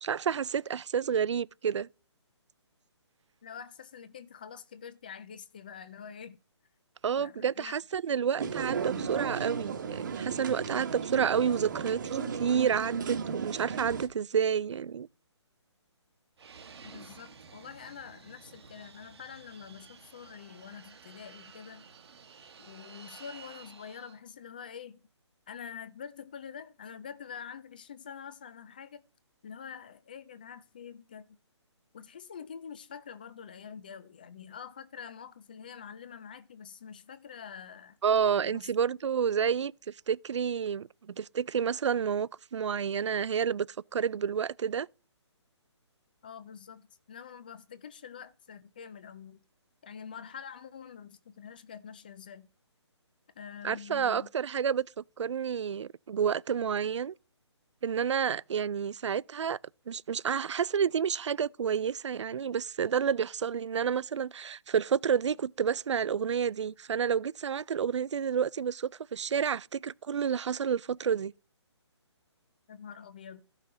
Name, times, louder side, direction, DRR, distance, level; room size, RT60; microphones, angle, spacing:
voice 1, 0.0-1.9 7.0-15.1 38.0-39.7 40.1-43.7 43.9-44.9 53.6-54.9 55.2-57.1 57.8-59.6 59.9-71.3, right 7 dB, 80° right, 0.4 m, -29 dB
voice 2, 3.4-6.4 7.2-7.7 16.8-21.9 22.6-25.0 25.5-29.0 29.4-31.4 31.9-38.0 38.5-38.7 39.4-39.5 46.2-49.4 49.8-52.5 53.4-54.3 72.7-73.4, left 7 dB, 20° left, 0.3 m, -46 dB
sound 1, 8.4-14.1, right 6 dB, 40° right, 1.2 m, -35 dB
Fixed-wing aircraft airplane, 16.4-24.2, right 5 dB, 60° right, 1.2 m, -52 dB
14.0 x 5.7 x 3.8 m
hypercardioid pair, 165°, 15 cm